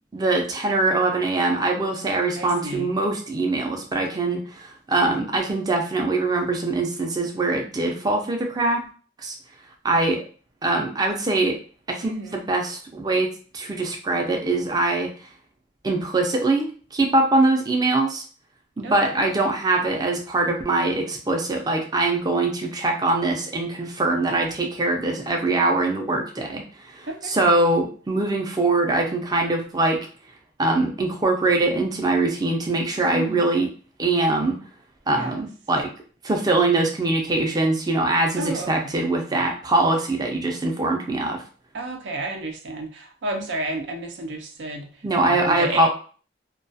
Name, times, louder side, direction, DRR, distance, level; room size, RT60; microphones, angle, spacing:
voice 1, 0.1-8.8 9.2-9.4 9.8-10.2 10.6-11.6 11.9-13.3 13.5-15.3 15.8-18.2 18.8-30.1 30.6-33.7 34.0-34.6 35.1-35.9 36.2-41.4 45.0-45.9, right 2 dB, 20° right, 2 dB, 0.4 m, -23 dB
voice 2, 2.4-2.9 12.0-12.5 18.8-19.3 27.1-27.3 33.1-33.6 35.0-35.4 38.4-39.0 41.7-45.9, right 2 dB, 85° right, 3 dB, 0.5 m, -32 dB
2.3 x 2.2 x 2.6 m, 0.40 s
head